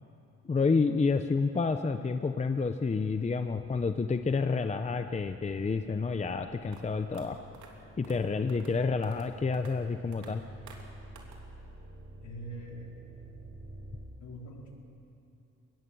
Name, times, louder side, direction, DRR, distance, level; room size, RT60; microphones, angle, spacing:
voice 1, 0.5-7.4 8.0-10.4, left 4 dB, 25° left, 8 dB, 0.8 m, -29 dB
sound 1, 3.6-14.0, right 1 dB, 35° right, 5.1 m, -50 dB
sound 2, 6.7-6.8 7.1-7.2 7.5-7.7 8.0-8.2 8.5-8.7 9.0-9.3 9.5-9.7 10.1-10.3 10.7-10.8 11.1-11.4, right 6 dB, 75° right, 3.1 m, -51 dB
voice 2, 12.2-12.9 14.2-14.7, right 1 dB, 65° left, -1 dB, 4.3 m, -43 dB
23.0 x 19.5 x 7.1 m, 2.7 s
cardioid pair, 90°, 30 cm